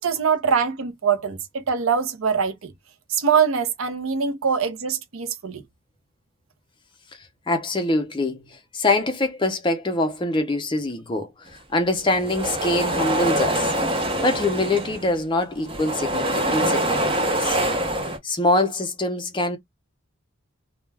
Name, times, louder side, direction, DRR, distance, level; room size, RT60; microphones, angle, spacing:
voice 1, 0.0-2.7 3.1-5.6, right 6 dB, 75° right, 0.6 m, -23 dB
voice 2, 7.2-17.6 18.2-19.6, left 2 dB, 20° left, 0.5 m, -24 dB
sound 1, 12.0-15.2 15.5-18.2, right 1 dB, 25° right, 0.6 m, -24 dB
2.2 x 2.2 x 3.2 m
head